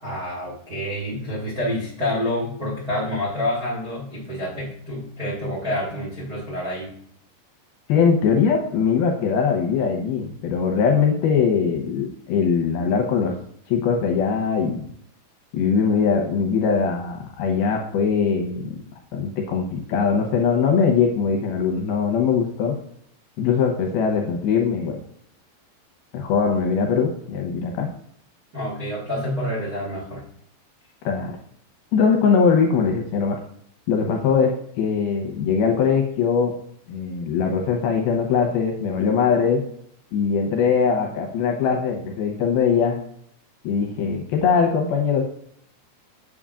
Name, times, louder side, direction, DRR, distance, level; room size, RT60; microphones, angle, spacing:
voice 1, 0.0-6.9 28.5-30.2, left 1 dB, 45° right, -3 dB, 1.1 m, -28 dB
voice 2, 7.9-13.3 13.7-14.9 15.5-18.8 19.1-22.8 23.4-25.0 26.1-27.9 31.0-31.3 31.9-33.4 33.9-36.5 36.9-39.6 40.1-43.0 43.6-45.2, left 6 dB, 80° left, 2 dB, 2.4 m, -21 dB
8.5 x 7.1 x 2.4 m, 0.66 s
omnidirectional pair, 5.0 m